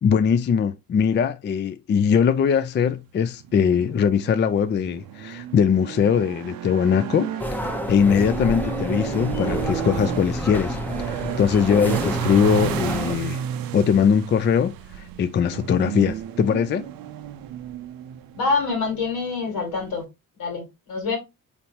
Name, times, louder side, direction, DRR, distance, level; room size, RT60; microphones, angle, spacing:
voice 1, 0.0-13.4 13.7-14.7 15.2-16.9, left 7 dB, 30° left, 0.4 m, -21 dB
sound 1, 3.4-20.0, right 10 dB, 75° right, 0.5 m, -33 dB
sound 2, 7.4-13.2, equal, 5° left, 0.7 m, -29 dB
voice 2, 18.4-20.1 20.4-21.2, left 4 dB, 80° left, 2.1 m, -26 dB
4.0 x 3.3 x 2.8 m
cardioid pair, 80°, 35 cm